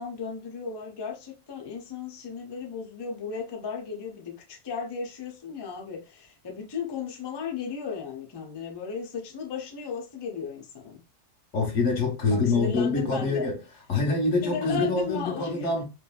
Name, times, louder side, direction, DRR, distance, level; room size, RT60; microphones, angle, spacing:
voice 1, 0.0-11.0 12.3-13.5 14.4-15.8, left 6 dB, 40° left, 0.3 m, -35 dB
voice 2, 11.5-13.6 13.9-15.8, left 3 dB, 85° left, 1.3 m, -25 dB
3.0 x 2.3 x 2.3 m
omnidirectional pair, 1.2 m